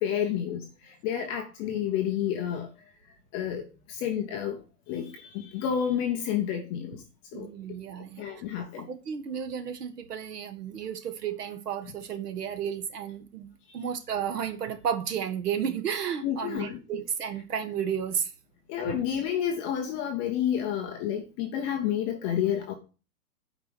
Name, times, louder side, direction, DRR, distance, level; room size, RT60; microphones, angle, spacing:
voice 1, 0.0-0.7 1.0-2.7 3.3-3.6 3.9-4.6 4.9-7.0 7.3-7.5 8.2-8.9 16.2-16.8 18.7-22.7, left 9 dB, 15° left, 0.4 m, -29 dB
voice 2, 7.3-8.4 8.9-13.5 13.7-18.3 18.9-19.0, right 8 dB, 80° right, 1.7 m, -33 dB
8.3 x 4.9 x 6.1 m
hypercardioid pair, 135°, 46 cm